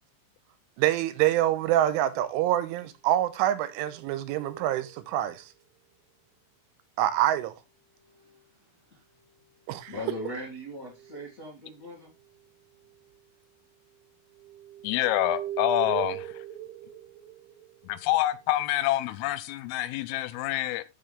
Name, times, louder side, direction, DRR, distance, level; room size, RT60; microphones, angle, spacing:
voice 1, 0.8-5.4 7.0-7.5 9.7-9.9, right 13 dB, 85° right, 3.2 m, -26 dB
sound 1, 3.4-5.3 7.6-8.5 9.1-11.3 12.2-12.4 12.7-13.2 13.9-18.6, right 11 dB, 65° right, 3.6 m, -41 dB
voice 2, 9.9-12.1, left 1 dB, 55° left, 0.9 m, -39 dB
voice 3, 14.8-16.4 17.8-20.8, left 15 dB, 90° left, 3.4 m, -27 dB
14.0 x 5.7 x 3.3 m
omnidirectional pair, 5.7 m